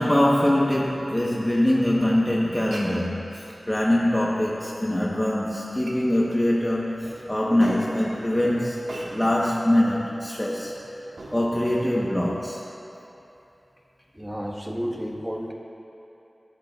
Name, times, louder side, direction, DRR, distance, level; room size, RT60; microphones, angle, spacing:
voice 1, 0.0-10.8 11.3-12.6, left 1 dB, 15° left, -4 dB, 1.1 m, -23 dB
Glass, 2.5-12.4, right 1 dB, 85° right, 1.6 m, -44 dB
voice 2, 14.1-15.5, equal, 15° right, 0 dB, 1.5 m, -31 dB
22.0 x 11.0 x 2.4 m, 2.9 s
wide cardioid pair, 55°, 0 cm